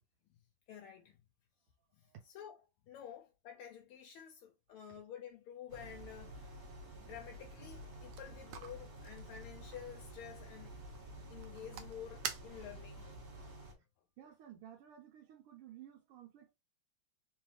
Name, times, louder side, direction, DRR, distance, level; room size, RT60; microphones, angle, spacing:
voice 1, 0.7-1.2 1.9-2.1 2.3-2.6 2.8-6.6 7.0-10.8 11.3-13.1, left 9 dB, 80° left, 1.5 m, -50 dB
voice 2, 2.0-2.3 4.7-5.0 13.5-13.6 14.2-16.5, right 10 dB, 85° right, 1.5 m, -55 dB
sound 1, 5.7-13.7, right 1 dB, 45° right, 1.9 m, -51 dB
sound 2, 7.8-13.0, right 8 dB, 70° right, 1.1 m, -49 dB
3.7 x 3.1 x 3.2 m
omnidirectional pair, 2.4 m